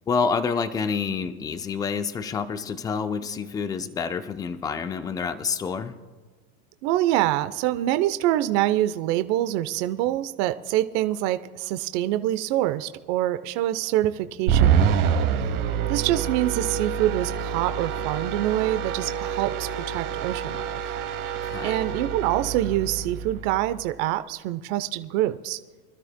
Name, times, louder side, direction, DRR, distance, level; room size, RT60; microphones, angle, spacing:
voice 1, 0.1-6.0 21.4-21.8, left 5 dB, 10° left, 11 dB, 0.3 m, -28 dB
voice 2, 6.8-15.3 15.9-20.8 21.6-25.6, right 14 dB, 50° right, 11 dB, 0.8 m, -25 dB
sound 1, 14.5-23.8, right 8 dB, 75° right, 2.4 m, -26 dB
25.5 x 12.5 x 2.2 m, 1.4 s
hypercardioid pair, 115°, 45 cm